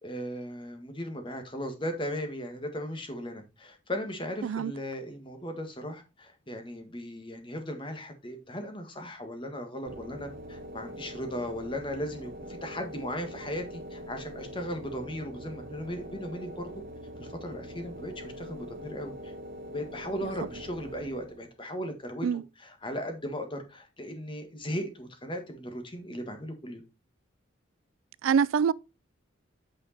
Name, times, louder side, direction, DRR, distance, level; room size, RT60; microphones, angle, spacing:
voice 1, 0.0-16.7 17.2-19.3 19.7-26.8, equal, 25° left, 1.6 m, -37 dB
sound 1, 9.9-21.6, equal, 45° right, 1.2 m, -43 dB
voice 2, 28.2-28.7, right 7 dB, 90° right, 0.4 m, -24 dB
8.7 x 5.0 x 4.2 m
head